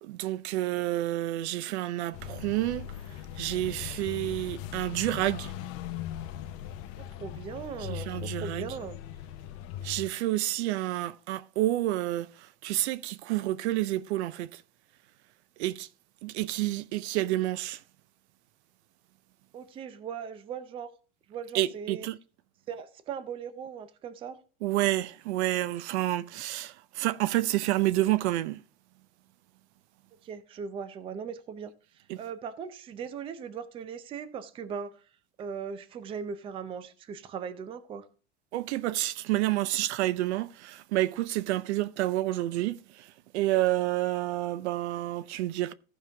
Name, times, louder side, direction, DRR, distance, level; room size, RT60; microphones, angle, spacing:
voice 1, 0.0-2.9 3.4-5.5 7.9-8.7 9.8-14.6 15.6-15.9 16.2-17.8 21.5-22.2 24.6-28.6 32.1-32.2 38.5-45.7, right 15 dB, 80° right, 0.7 m, -29 dB
sound 1, 2.1-10.1, left 10 dB, 45° left, 0.9 m, -39 dB
voice 2, 7.0-9.0 19.5-20.9 21.3-22.1 22.7-24.4 30.2-35.1 35.4-38.1, right 7 dB, 15° right, 0.5 m, -39 dB
15.0 x 5.5 x 3.4 m
supercardioid pair, 165°, 33 cm